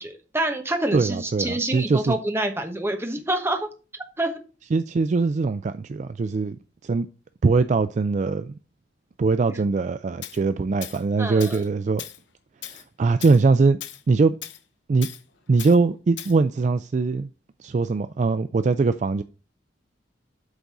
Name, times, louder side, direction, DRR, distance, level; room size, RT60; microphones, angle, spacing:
voice 1, 0.0-3.7 4.2-4.4 11.2-11.6, right 1 dB, 15° right, 1.0 m, -27 dB
voice 2, 0.9-2.2 4.7-6.6 6.8-7.1 7.4-8.6 9.2-12.0 12.7-13.8 14.1-14.4 14.9-15.1 15.5-17.3 17.6-19.2, right 4 dB, 40° right, 0.3 m, -21 dB
Tools, 10.2-10.4 10.8-11.0 11.4-11.7 12.0-12.2 12.6-12.8 13.2-13.4 13.8-14.0 14.4-14.6 15.0-15.2 15.6-15.8 16.2-16.4, left 12 dB, 85° left, 0.7 m, -38 dB
8.2 x 4.0 x 5.9 m
head